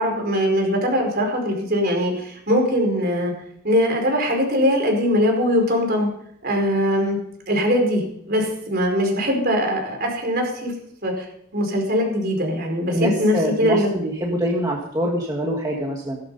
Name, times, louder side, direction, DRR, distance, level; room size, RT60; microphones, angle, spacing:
voice 1, 0.0-3.3 3.6-6.1 6.4-7.2 7.5-10.7 11.0-11.3 11.5-13.9, equal, 45° right, 2 dB, 4.8 m, -21 dB
voice 2, 12.9-16.2, equal, 15° right, -1 dB, 1.7 m, -24 dB
17.5 x 12.5 x 5.5 m, 0.72 s
head